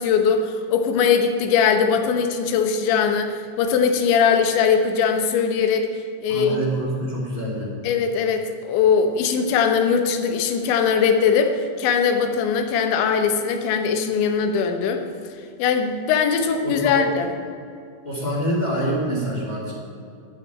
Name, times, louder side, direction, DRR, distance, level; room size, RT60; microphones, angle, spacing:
voice 1, 0.0-5.9 6.2-6.6 7.8-15.0 15.6-17.3, left 6 dB, 90° left, 6 dB, 3.3 m, -20 dB
voice 2, 6.3-7.7 16.6-17.1 18.0-19.7, right 1 dB, 20° left, -5 dB, 1.1 m, -26 dB
9.4 x 7.3 x 9.2 m, 2.5 s
omnidirectional pair, 5.1 m